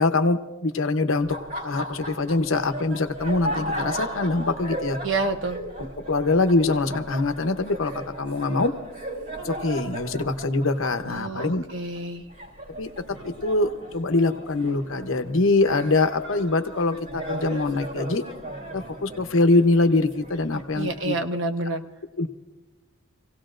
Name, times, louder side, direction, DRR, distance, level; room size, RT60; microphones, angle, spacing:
voice 1, 0.0-1.4 1.6-5.0 6.1-8.7 9.4-11.6 12.8-12.9 13.2-18.2 18.7-21.1 22.2-22.3, left 2 dB, 75° left, 8 dB, 0.9 m, -23 dB
Laughter, 1.2-21.1, right 1 dB, 40° right, 3.3 m, -36 dB
voice 2, 5.0-5.6 11.1-12.2 20.5-21.8, right 2 dB, 65° right, 6 dB, 1.1 m, -28 dB
26.5 x 17.0 x 2.5 m, 1.1 s
head